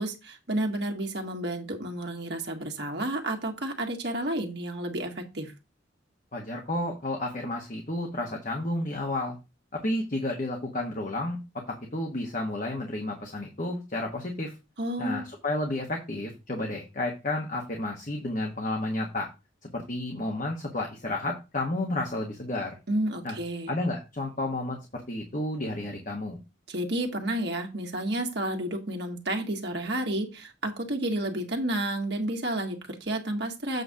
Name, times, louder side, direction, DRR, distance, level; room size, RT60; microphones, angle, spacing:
voice 1, 0.0-5.5 14.8-15.3 22.9-23.7 26.7-33.8, right 1 dB, 55° right, 3 dB, 1.6 m, -31 dB
voice 2, 6.3-9.4 9.7-11.4 11.7-14.5 15.0-19.3 19.6-22.8 23.2-23.4 23.7-24.8 25.1-26.4, left 1 dB, 40° left, 1 dB, 1.3 m, -31 dB
7.9 x 3.3 x 6.4 m, 0.27 s
head